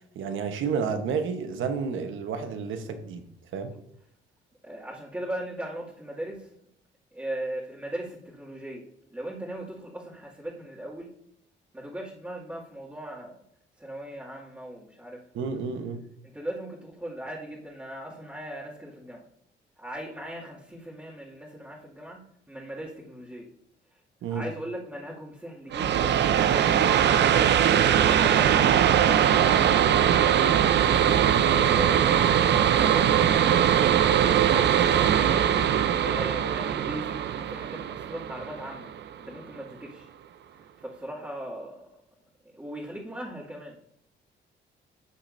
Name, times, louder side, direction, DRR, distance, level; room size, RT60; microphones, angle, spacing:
voice 1, 0.1-3.2 3.5-3.7 15.3-16.0 24.2-24.5, right 6 dB, 80° right, 1.2 m, -30 dB
voice 2, 4.6-6.5 7.1-11.1 11.7-13.4 13.8-15.5 16.2-19.3 19.8-23.5 23.9-24.0 24.3-27.2 36.0-38.9 39.2-40.1 40.6-41.9 42.4-43.8, right 1 dB, 10° right, 2.4 m, -39 dB
sound 1, 25.7-39.1, right 9 dB, 60° right, 0.6 m, -21 dB
12.5 x 7.3 x 2.7 m
cardioid pair, 90°, 20 cm